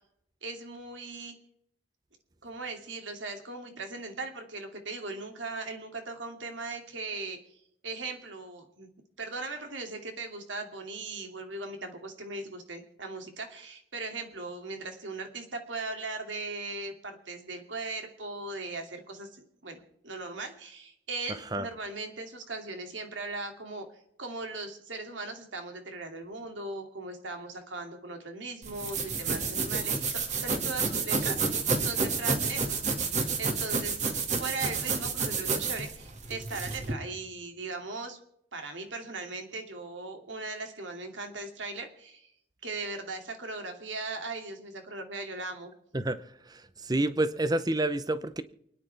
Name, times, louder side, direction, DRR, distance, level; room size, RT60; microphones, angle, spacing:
voice 1, 0.4-1.3 2.4-8.9 9.2-23.9 24.2-32.8 33.4-34.0 34.3-38.2 38.5-42.3 42.6-45.7, right 3 dB, 90° right, 4 dB, 2.6 m, -39 dB
sound 1, 28.6-36.9, right 4 dB, 40° right, 1.9 m, -30 dB
voice 2, 46.5-48.4, right 1 dB, 20° right, 13 dB, 0.7 m, -28 dB
29.0 x 10.0 x 3.4 m, 0.75 s
head